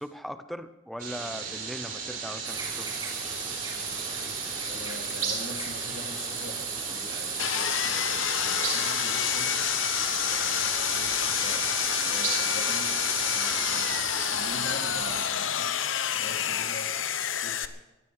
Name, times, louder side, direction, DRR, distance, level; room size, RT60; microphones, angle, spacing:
voice 1, 0.0-2.9, equal, ahead, 10 dB, 0.8 m, -39 dB
sound 1, 1.0-14.0, right 5 dB, 45° right, 4.0 m, -35 dB
sound 2, 2.4-15.3, right 4 dB, 20° right, 3.6 m, -37 dB
voice 2, 4.7-13.0 13.3-15.8 16.1-16.9 17.3-17.7, left 2 dB, 55° left, 2 dB, 2.6 m, -44 dB
Sawing, 7.4-17.7, left 9 dB, 90° left, 0.9 m, -28 dB
19.0 x 14.5 x 4.9 m, 1.0 s
head